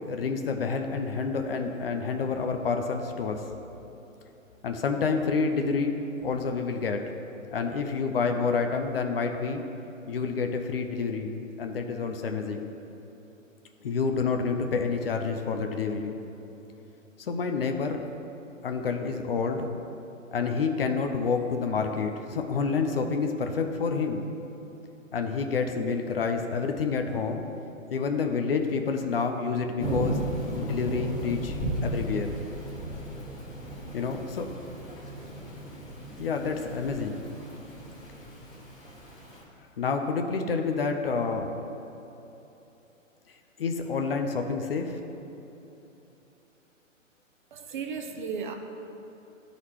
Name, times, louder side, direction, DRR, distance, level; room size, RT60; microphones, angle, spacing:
voice 1, 0.1-3.4 4.6-5.9 6.2-7.1 7.5-9.6 10.1-11.3 11.6-12.7 13.8-16.2 17.2-18.0 18.6-19.7 20.3-24.4 25.1-27.5 27.9-30.3 30.6-31.6 31.8-32.4 33.9-34.5 36.2-37.2 39.8-41.5 43.6-45.0, left 5 dB, 45° left, 5 dB, 0.6 m, -28 dB
Thunder / Rain, 29.8-39.4, right 1 dB, 10° left, 1.1 m, -35 dB
voice 2, 47.5-48.5, right 6 dB, 40° right, 4 dB, 0.6 m, -35 dB
12.0 x 4.0 x 3.1 m, 3.0 s
figure-of-eight pair, 125°, 40 cm